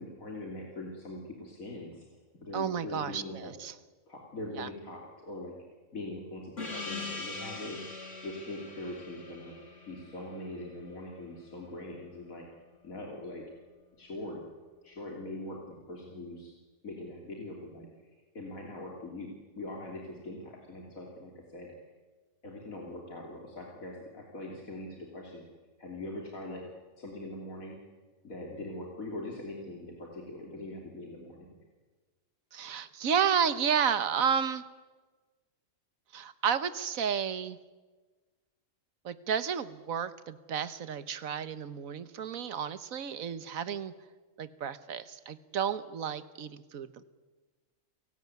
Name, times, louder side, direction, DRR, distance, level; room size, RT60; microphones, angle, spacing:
voice 1, 0.0-2.1 2.4-3.5 4.1-5.5 5.9-9.6 9.9-12.5 12.8-13.4 14.0-14.4 14.8-16.5 16.8-17.9 18.3-21.7 22.4-25.5 25.8-26.6 27.0-27.8 28.2-31.6, left 1 dB, 85° left, -1 dB, 3.5 m, -42 dB
voice 2, 2.5-3.7 4.6-4.7 32.5-34.6 36.1-37.6 39.0-43.9 44.4-47.0, right 7 dB, 85° right, 13 dB, 1.5 m, -31 dB
Gong, 6.6-11.6, left 3 dB, 60° left, 3.2 m, -43 dB
30.0 x 18.0 x 9.5 m, 1.3 s
omnidirectional pair, 1.4 m